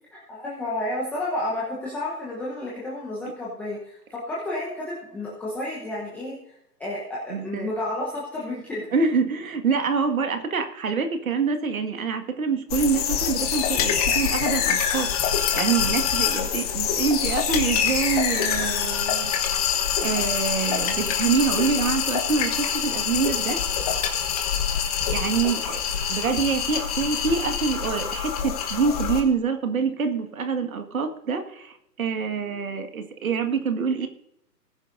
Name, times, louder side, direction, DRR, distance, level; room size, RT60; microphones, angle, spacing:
voice 1, 0.1-6.5 6.8-8.8, left 1 dB, 5° left, -6 dB, 1.0 m, -31 dB
voice 2, 7.3-7.7 8.9-19.3 20.0-23.6 25.1-25.8 26.1-34.1, right 5 dB, 55° right, 7 dB, 1.9 m, -26 dB
sound 1, 12.7-29.2, left 8 dB, 25° left, 1.3 m, -25 dB
20.0 x 10.0 x 2.7 m, 0.78 s
figure-of-eight pair, 140°, 49 cm